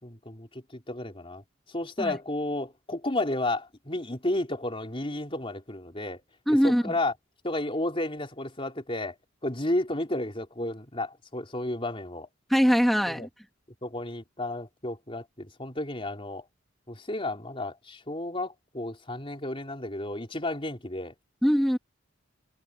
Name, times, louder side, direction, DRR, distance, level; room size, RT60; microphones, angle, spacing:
voice 1, 0.0-1.4 1.7-6.2 6.5-7.1 7.4-9.2 9.4-12.3 13.1-13.3 13.8-16.5 16.9-21.1, left 1 dB, 25° left, 4.0 m, -32 dB
voice 2, 6.5-6.9 12.5-13.3 21.4-21.8, equal, ahead, 1.3 m, -22 dB
head